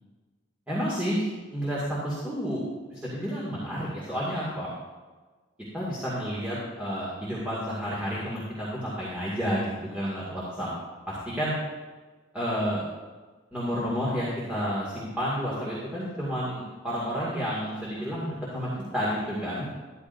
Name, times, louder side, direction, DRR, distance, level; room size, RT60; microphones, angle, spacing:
voice 1, 0.7-2.6 2.9-4.7 5.7-10.7 11.1-11.5 12.3-12.8 13.5-19.6, equal, 5° right, -8 dB, 2.3 m, -30 dB
13.5 x 11.5 x 2.7 m, 1.3 s
head